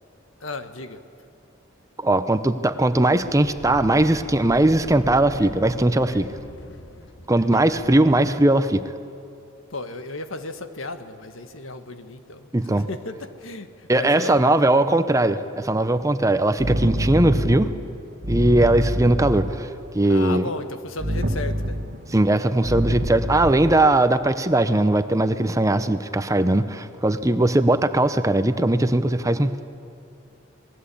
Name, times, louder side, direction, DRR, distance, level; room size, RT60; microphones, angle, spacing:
voice 1, 0.4-1.0 9.7-14.5 20.1-21.8, left 3 dB, 85° left, 9 dB, 1.5 m, -34 dB
voice 2, 2.0-6.3 7.3-8.8 12.5-12.9 13.9-17.7 18.3-20.4 22.1-29.6, right 1 dB, 15° right, 10 dB, 0.7 m, -19 dB
sound 1, 3.1-8.6, left 1 dB, 60° left, 1.4 m, -41 dB
sound 2, 16.6-19.6 21.0-22.1 22.6-23.9, equal, 50° right, 1.6 m, -26 dB
27.5 x 20.5 x 8.5 m, 2.5 s
head